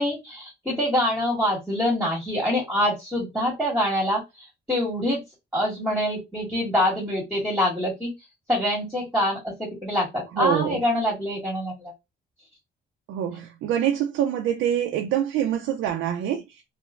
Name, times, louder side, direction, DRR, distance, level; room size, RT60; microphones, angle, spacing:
voice 1, 0.0-4.2 4.7-5.2 5.5-8.1 8.5-11.9, left 1 dB, 5° right, 1.6 m, -25 dB
voice 2, 10.3-10.8 13.1-16.6, right 10 dB, 80° right, 0.4 m, -25 dB
3.0 x 2.1 x 2.4 m
cardioid pair, 90°, 20 cm